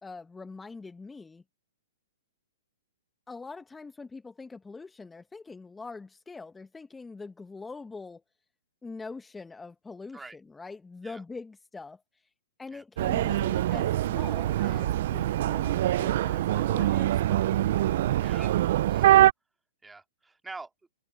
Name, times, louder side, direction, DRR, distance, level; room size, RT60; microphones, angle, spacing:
voice 1, 0.0-1.4 3.3-8.2 8.8-12.3 12.6-17.6, left 4 dB, 10° left, 1.3 m, -43 dB
sound 1, 13.0-19.3, right 13 dB, 55° right, 0.5 m, -24 dB
voice 2, 18.2-18.6 18.9-19.1 19.8-20.7, right 3 dB, 10° right, 3.0 m, -45 dB
hypercardioid pair, 120°, 0 cm